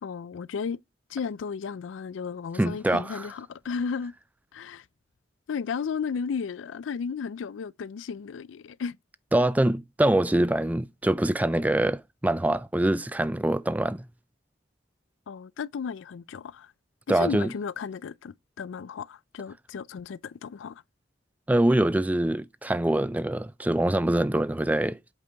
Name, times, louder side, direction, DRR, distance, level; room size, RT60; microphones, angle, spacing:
voice 1, 0.0-0.8 1.1-4.1 4.5-4.8 5.5-9.0 15.3-16.7 17.1-20.8, left 6 dB, 90° left, 0.4 m, -34 dB
voice 2, 2.6-3.2 9.3-14.1 17.1-17.5 21.5-25.1, right 1 dB, 10° right, 0.3 m, -24 dB
8.1 x 5.3 x 3.3 m
head